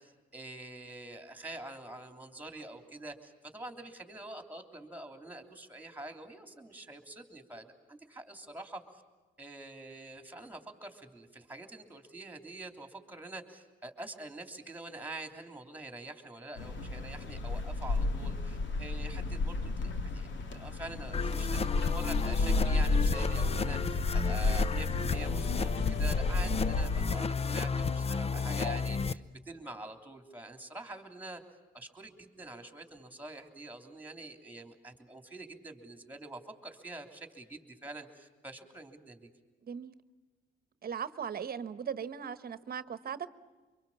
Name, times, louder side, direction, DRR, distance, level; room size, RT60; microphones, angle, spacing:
voice 1, 0.0-9.0 9.4-31.4 31.7-39.3, right 2 dB, 10° right, 5 dB, 3.2 m, -46 dB
sound 1, 16.6-27.0, left 3 dB, 70° left, 2.2 m, -32 dB
sound 2, 21.1-29.1, left 5 dB, 30° left, 0.7 m, -32 dB
voice 2, 39.6-40.0 40.8-43.3, right 7 dB, 50° right, 13 dB, 1.2 m, -38 dB
25.0 x 23.0 x 7.3 m, 1.3 s
cardioid pair, 90°, 20 cm